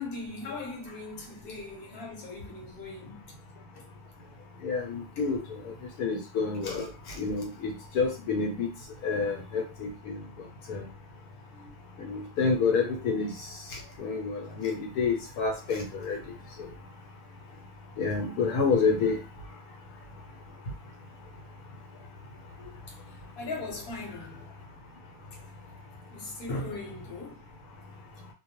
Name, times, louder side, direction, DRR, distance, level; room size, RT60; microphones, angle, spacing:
voice 1, 0.0-3.3 3.7-3.8 11.5-11.7 23.4-24.4 26.1-27.4, left 2 dB, 45° left, 1.0 m, -39 dB
voice 2, 4.6-5.4 6.0-6.9 7.2-8.7 9.0-10.2 10.7-10.8 12.0-13.3 14.0-16.2 18.0-19.2, left 4 dB, 75° left, 1.1 m, -28 dB
2.4 x 2.2 x 2.9 m
omnidirectional pair, 1.6 m